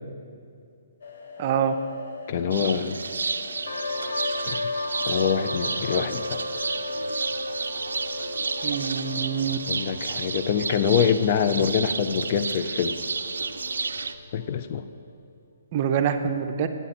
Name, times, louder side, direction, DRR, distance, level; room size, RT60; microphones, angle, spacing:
sound 1, 1.0-7.1, left 3 dB, 65° left, 1.1 m, -42 dB
voice 1, 1.4-1.7 8.6-9.6 15.7-16.7, right 8 dB, 40° right, 7 dB, 0.6 m, -25 dB
voice 2, 2.3-3.0 4.5-4.6 5.1-6.4 9.7-13.0 14.3-14.8, left 7 dB, 45° left, 10 dB, 0.4 m, -25 dB
sound 2, 2.5-14.1, right 4 dB, 85° right, 0.4 m, -31 dB
sound 3, 3.7-15.0, left 2 dB, 85° left, 0.7 m, -35 dB
8.5 x 8.2 x 4.2 m, 2.4 s
hypercardioid pair, 150°, 0 cm